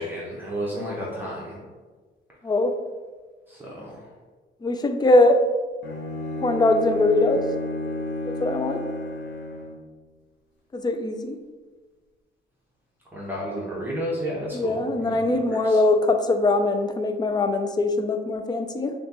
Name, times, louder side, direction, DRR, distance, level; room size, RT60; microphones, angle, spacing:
voice 1, 0.0-1.6 3.5-4.0 13.1-15.2 15.5-15.8, equal, 10° right, -6 dB, 0.9 m, -32 dB
voice 2, 4.6-5.4 6.4-7.5 8.2-8.8 10.7-11.4 14.5-18.9, left 2 dB, 20° left, 7 dB, 0.4 m, -21 dB
Bowed string instrument, 5.8-9.9, left 2 dB, 65° left, 0.8 m, -32 dB
6.2 x 2.3 x 2.9 m, 1.4 s
cardioid pair, 90°, 20 cm